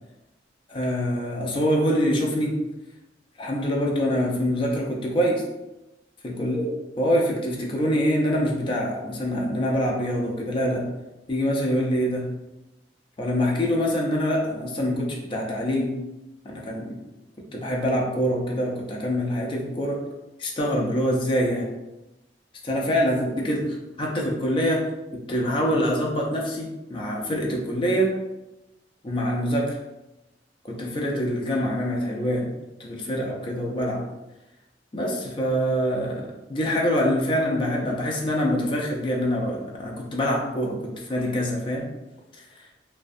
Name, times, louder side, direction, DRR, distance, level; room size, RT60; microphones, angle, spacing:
voice 1, 0.7-2.6 3.4-5.4 6.2-10.9 11.3-12.3 13.2-16.0 16.4-17.0 17.5-20.0 20.4-21.7 22.6-24.8 25.1-28.1 29.0-29.8 30.6-32.5 32.8-34.0 34.9-41.9, equal, 30° left, -2 dB, 0.4 m, -25 dB
2.4 x 2.2 x 2.5 m, 0.98 s
head